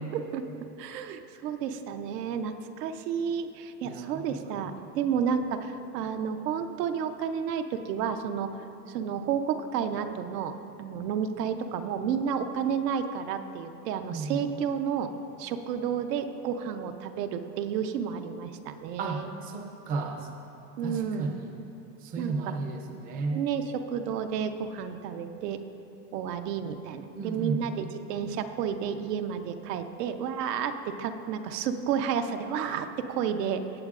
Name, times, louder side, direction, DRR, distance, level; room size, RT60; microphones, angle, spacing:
voice 1, 0.1-8.5 8.9-10.5 10.8-15.1 15.4-19.3 20.8-21.3 22.2-22.6 23.3-25.6 26.1-33.6, right 7 dB, 80° right, 8 dB, 0.7 m, -31 dB
voice 2, 3.8-4.7 14.1-14.4 19.0-20.3 20.8-21.5 22.0-23.4 27.1-27.6, right 3 dB, 20° right, 3 dB, 0.4 m, -34 dB
16.5 x 8.0 x 2.4 m, 2.9 s
supercardioid pair, 145°, 47 cm